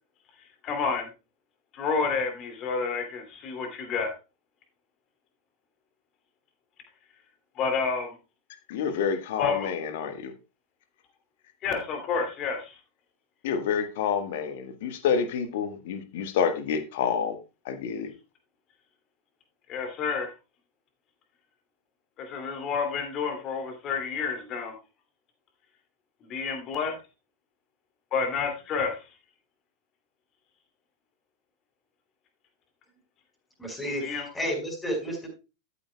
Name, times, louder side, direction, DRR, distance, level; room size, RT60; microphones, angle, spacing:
voice 1, 0.6-1.1 1.7-4.1 7.6-8.2 9.4-9.7 11.6-12.7 19.7-20.3 22.2-24.7 26.2-26.9 28.1-29.0 34.0-34.3, left 5 dB, 35° left, 5 dB, 2.5 m, -29 dB
voice 2, 8.7-10.3 13.4-17.4 17.6-18.1, left 7 dB, 55° left, 9 dB, 1.4 m, -28 dB
voice 3, 33.6-35.3, equal, 10° left, 2 dB, 4.9 m, -31 dB
13.0 x 8.5 x 2.2 m, 0.29 s
figure-of-eight pair, 90°, 0 cm